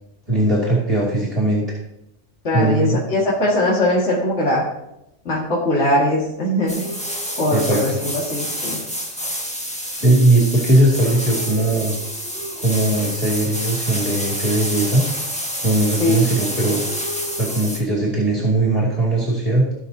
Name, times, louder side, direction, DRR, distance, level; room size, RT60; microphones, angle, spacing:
voice 1, 0.3-1.8 2.5-3.0 7.5-8.0 10.0-12.0 12.6-15.1 15.6-16.8 17.4-19.7, right 2 dB, 30° right, -4 dB, 2.2 m, -19 dB
voice 2, 2.4-4.7 5.3-6.8 7.4-8.8 16.0-16.3, left 1 dB, 65° left, -6 dB, 2.3 m, -20 dB
sound 1, 6.7-17.8, equal, 5° left, 1.4 m, -28 dB
16.5 x 6.1 x 2.8 m, 0.84 s
omnidirectional pair, 1.2 m